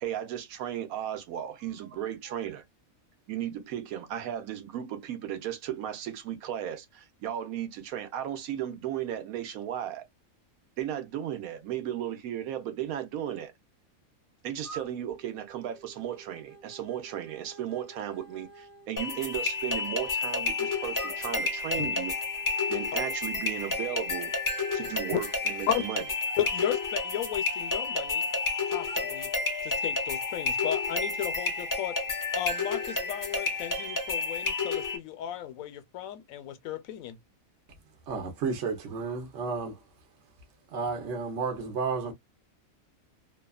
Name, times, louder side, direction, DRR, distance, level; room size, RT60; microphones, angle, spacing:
voice 1, 0.0-2.6 3.3-10.0 10.8-13.5 14.4-22.1 22.7-24.3 24.7-26.0, right 10 dB, 80° right, 1.1 m, -35 dB
sound 1, 14.6-20.2 20.9-25.4 26.3-28.5 28.9-32.1, equal, 35° right, 1.0 m, -48 dB
sound 2, 19.0-35.0, left 3 dB, 30° left, 0.4 m, -31 dB
voice 2, 26.4-28.3 28.7-29.3 29.6-32.0 32.3-37.2, left 11 dB, 75° left, 1.0 m, -34 dB
voice 3, 38.1-39.8 40.7-42.1, right 5 dB, 60° right, 1.0 m, -32 dB
2.7 x 2.3 x 2.2 m
omnidirectional pair, 1.5 m